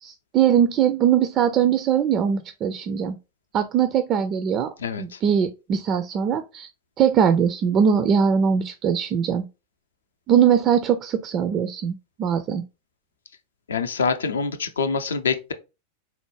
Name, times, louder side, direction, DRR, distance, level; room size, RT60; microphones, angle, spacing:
voice 1, 0.0-3.2 3.5-4.7 5.0-6.7 7.0-9.5 10.3-12.6, right 8 dB, 30° right, 0.3 m, -21 dB
voice 2, 4.8-5.2 13.7-15.5, left 5 dB, 70° left, 0.5 m, -25 dB
4.3 x 2.1 x 3.1 m
figure-of-eight pair, 90°, 0 cm